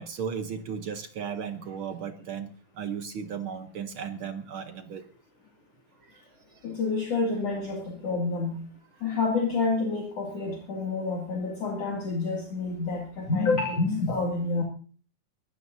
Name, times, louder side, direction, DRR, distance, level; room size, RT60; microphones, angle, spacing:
voice 1, 0.0-2.5 2.8-5.0 9.0-9.1 13.3-13.4, right 7 dB, 70° right, 8 dB, 1.2 m, -35 dB
voice 2, 6.6-8.6 9.0-14.6, left 3 dB, 55° left, -1 dB, 3.4 m, -28 dB
21.5 x 15.5 x 2.7 m, 0.40 s
omnidirectional pair, 3.5 m